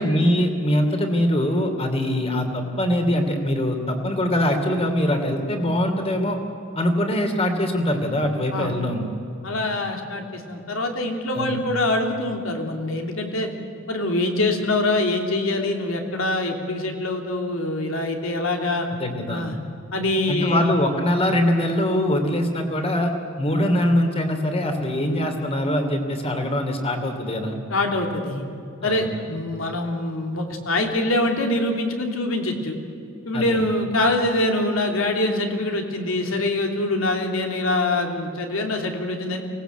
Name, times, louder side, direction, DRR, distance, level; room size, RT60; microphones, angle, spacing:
voice 1, 0.0-6.4 6.7-9.1 11.3-11.6 18.9-19.5 20.3-23.1 23.4-27.6 28.8-29.1 33.3-33.6, left 1 dB, 30° left, 5 dB, 2.9 m, -23 dB
voice 2, 9.4-13.5 13.9-18.9 19.3-19.6 19.9-20.7 27.7-28.5 28.8-32.8 33.2-39.4, left 2 dB, 80° left, 3 dB, 3.1 m, -24 dB
24.5 x 18.5 x 8.2 m, 2.7 s
head